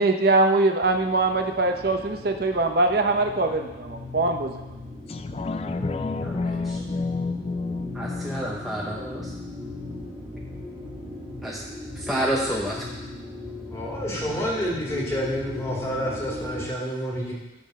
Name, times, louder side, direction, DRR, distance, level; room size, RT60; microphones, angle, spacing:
voice 1, 0.0-4.5, right 2 dB, 60° right, 5 dB, 0.8 m, -22 dB
sound 1, 0.8-16.7, left 2 dB, 15° right, 1.7 m, -38 dB
sound 2, 5.1-10.1 10.6-10.7, left 3 dB, 35° left, 0.3 m, -31 dB
voice 2, 6.2-6.8 7.9-9.3 11.4-11.6 11.9-12.9, right 1 dB, ahead, -4 dB, 0.8 m, -29 dB
voice 3, 13.7-17.3, equal, 15° left, -5 dB, 2.1 m, -29 dB
11.5 x 3.9 x 6.6 m, 1.1 s
head